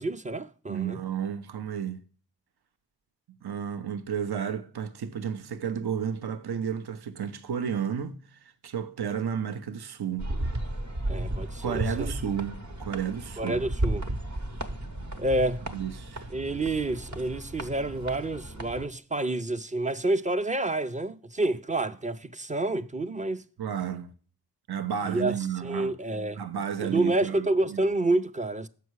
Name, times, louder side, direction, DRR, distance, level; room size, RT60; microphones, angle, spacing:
voice 1, 0.0-1.0 11.1-12.1 13.4-14.0 15.2-15.6 16.3-23.4 25.0-26.4 26.8-28.7, right 2 dB, 20° right, 0.5 m, -28 dB
voice 2, 0.7-2.0 3.4-10.3 11.6-13.6 15.7-16.3 23.6-24.1 24.7-25.9 26.3-27.8, right 8 dB, 70° right, 0.8 m, -32 dB
sound 1, 10.2-18.9, right 1 dB, 45° right, 1.0 m, -34 dB
7.0 x 5.6 x 4.6 m
cardioid pair, 40°, 40 cm